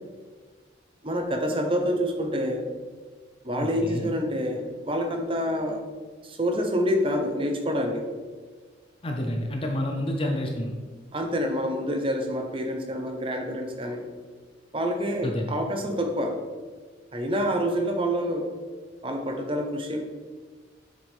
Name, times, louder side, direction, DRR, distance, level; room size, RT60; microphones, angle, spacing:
voice 1, 1.0-2.7 3.4-5.8 6.2-8.0 11.1-14.0 14.7-16.4 17.1-18.5 19.0-20.0, equal, 25° right, 4 dB, 0.9 m, -27 dB
voice 2, 3.6-4.1 9.0-10.7 15.2-15.6, left 1 dB, 30° left, 1 dB, 0.7 m, -29 dB
7.8 x 6.4 x 3.6 m, 1.4 s
head